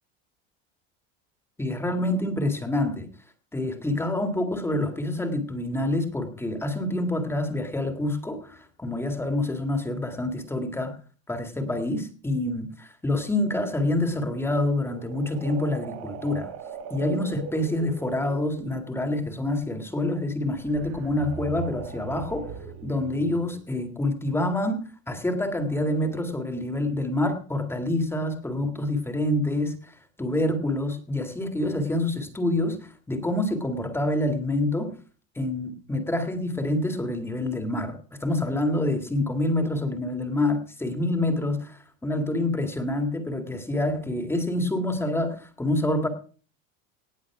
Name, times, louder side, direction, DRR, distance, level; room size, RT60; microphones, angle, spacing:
voice 1, 1.6-3.1 3.5-11.0 11.3-16.5 16.9-22.5 22.8-34.9 35.4-46.1, left 1 dB, 5° left, 6 dB, 1.9 m, -27 dB
sound 1, 13.8-18.8 20.5-23.7 25.4-26.4, right 7 dB, 55° right, 3.7 m, -40 dB
18.5 x 7.5 x 4.8 m, 0.39 s
supercardioid pair, 145°, 33 cm